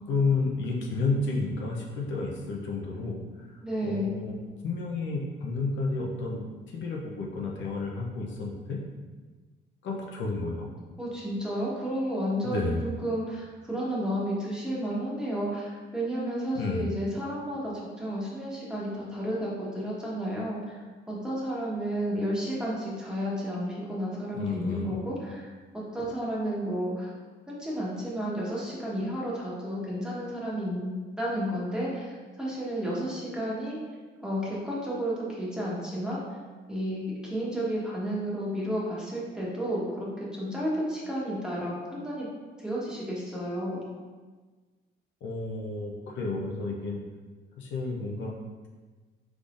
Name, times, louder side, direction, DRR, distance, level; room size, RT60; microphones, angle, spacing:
voice 1, 0.1-3.5 3.8-4.3 4.6-8.8 9.8-10.7 12.4-12.8 16.5-16.9 24.3-25.0 45.2-47.0 47.6-48.3, left 3 dB, 70° left, -1 dB, 0.6 m, -31 dB
voice 2, 3.6-4.1 11.0-12.7 13.0-20.7 21.1-27.1 27.5-30.9 31.2-33.8 34.2-36.2 36.7-42.3 42.6-43.8, equal, 5° right, -6 dB, 1.2 m, -32 dB
3.8 x 3.5 x 2.5 m, 1.4 s
cardioid pair, 90°, 20 cm